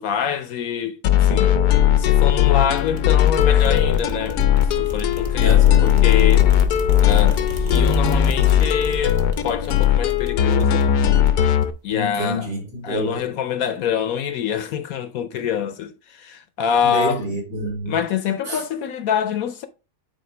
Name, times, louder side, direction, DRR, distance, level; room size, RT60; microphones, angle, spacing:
voice 1, 0.0-1.6 2.0-4.4 4.8-6.5 7.0-10.8 11.8-12.5 12.8-17.2 17.9-19.7, left 8 dB, 70° left, 1.0 m, -25 dB
sound 1, 1.0-11.7, left 10 dB, 90° left, 1.2 m, -17 dB
sound 2, 2.7-11.9, right 2 dB, 35° right, 0.7 m, -33 dB
voice 2, 5.4-6.0 11.9-13.2 16.8-18.0 18.5-18.6, right 1 dB, 65° right, 2.9 m, -28 dB
8.6 x 4.1 x 3.2 m
omnidirectional pair, 1.7 m